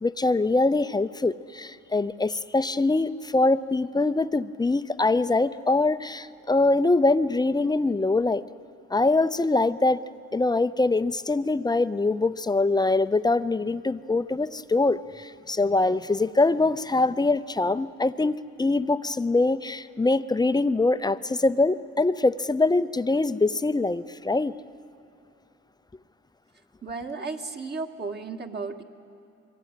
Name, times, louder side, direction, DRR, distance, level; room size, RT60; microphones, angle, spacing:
voice 1, 0.0-8.4 8.9-10.0 10.3-24.5, left 2 dB, 15° left, 0.6 m, -23 dB
voice 2, 26.8-28.8, right 4 dB, 35° right, 1.9 m, -34 dB
25.5 x 23.0 x 9.2 m
cardioid pair, 90°, 30 cm